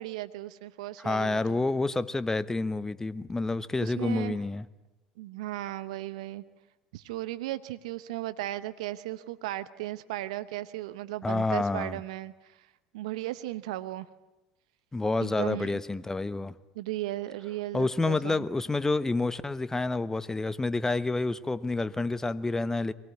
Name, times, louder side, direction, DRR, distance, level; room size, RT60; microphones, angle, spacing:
voice 1, 0.0-1.6 3.8-4.4 5.2-6.4 6.9-12.7 12.9-14.1 15.2-15.8 16.7-18.4, right 15 dB, 75° right, 13 dB, 0.8 m, -36 dB
voice 2, 1.0-4.7 11.2-12.0 14.9-16.5 17.7-22.9, left 3 dB, 15° left, 15 dB, 1.0 m, -29 dB
23.5 x 18.5 x 9.8 m, 1.0 s
hypercardioid pair, 75°, 4 cm